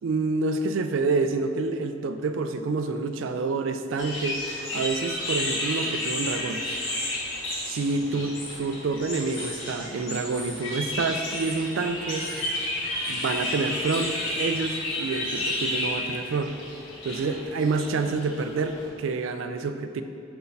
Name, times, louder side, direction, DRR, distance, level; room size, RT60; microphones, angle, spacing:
voice 1, 0.0-4.4 4.7-6.6 7.7-12.3 13.1-16.6 17.0-20.0, right 3 dB, 90° right, 9 dB, 0.4 m, -28 dB
sound 1, 4.0-18.9, left 1 dB, 90° left, 1.4 m, -32 dB
6.5 x 4.6 x 3.3 m, 2.6 s
head